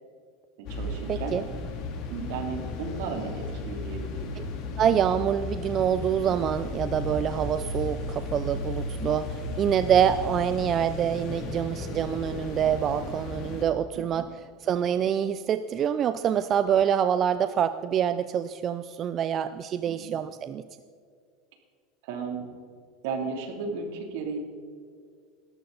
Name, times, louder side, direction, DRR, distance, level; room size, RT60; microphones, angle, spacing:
voice 1, 0.6-1.4 2.1-4.3 8.8-9.1 14.0-14.3 19.8-20.2 22.0-22.5 23.0-24.4, right 5 dB, 75° right, 3 dB, 2.9 m, -35 dB
sound 1, 0.7-13.6, left 3 dB, 50° left, 2.6 m, -35 dB
voice 2, 1.1-1.4 4.8-9.3 9.6-14.3 14.6-20.6, right 9 dB, 35° right, 12 dB, 0.5 m, -26 dB
18.5 x 13.5 x 4.0 m, 2.1 s
supercardioid pair, 145°, 0 cm